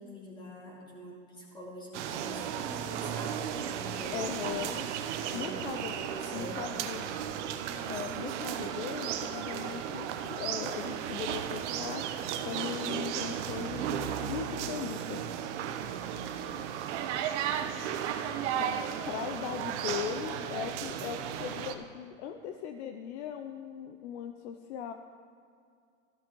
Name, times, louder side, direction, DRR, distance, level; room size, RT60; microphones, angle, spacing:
voice 1, 0.0-4.4 5.1-5.6 5.9-6.9 9.3-9.5 17.9-18.2 18.9-19.2 20.0-20.2, equal, 10° left, -3 dB, 2.3 m, -45 dB
sound 1, 1.9-21.7, right 9 dB, 60° right, 0.8 m, -35 dB
voice 2, 4.1-4.9 5.3-5.9 6.3-7.0 7.9-12.1 12.4-15.2 18.6-18.7 19.1-24.9, left 8 dB, 55° left, 6 dB, 0.6 m, -39 dB
13.5 x 12.5 x 3.1 m, 2.3 s
hypercardioid pair, 130°, 40 cm